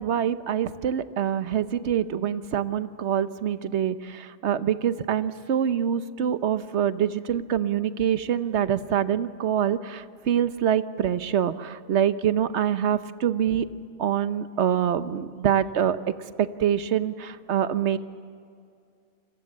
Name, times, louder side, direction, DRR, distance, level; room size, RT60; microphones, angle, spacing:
voice 1, 0.0-13.7 14.0-18.0, right 9 dB, 70° right, 12 dB, 1.1 m, -25 dB
28.5 x 22.0 x 7.4 m, 2.4 s
omnidirectional pair, 1.2 m